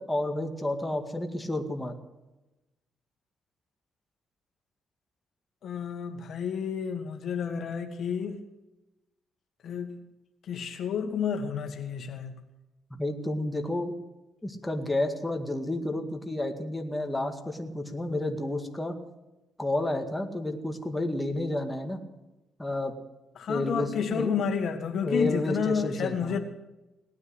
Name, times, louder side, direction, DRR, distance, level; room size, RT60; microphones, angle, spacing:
voice 1, 0.0-2.0 12.9-13.9 14.4-19.0 19.6-22.0 22.6-22.9 23.5-24.3 25.0-26.4, left 1 dB, 10° left, 4 dB, 2.0 m, -30 dB
voice 2, 5.6-8.4 9.6-10.0 10.4-12.3 23.4-26.4, left 7 dB, 65° left, 6 dB, 1.7 m, -30 dB
18.5 x 9.6 x 7.9 m, 1.0 s
cardioid pair, 90°, 0 cm